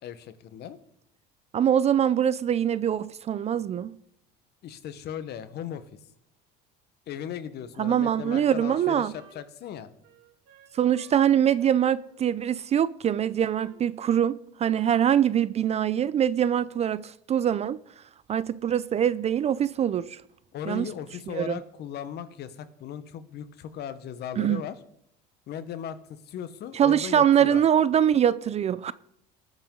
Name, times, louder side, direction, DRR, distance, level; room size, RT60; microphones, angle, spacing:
voice 1, 0.0-0.8 4.6-5.9 7.1-9.9 20.5-24.8 25.5-27.6, left 9 dB, 55° left, 1.2 m, -37 dB
voice 2, 1.5-4.0 7.8-9.1 10.7-17.8 18.3-20.2 20.7-20.9 21.3-21.6 24.4-24.6 26.7-28.9, right 9 dB, 30° right, 0.4 m, -23 dB
Wind instrument woodwind instrument, 7.8-11.2 11.5-12.7 13.1-14.4 14.7-15.2, right 5 dB, 75° right, 2.5 m, -56 dB
19.5 x 7.4 x 3.8 m
supercardioid pair, 110°, 21 cm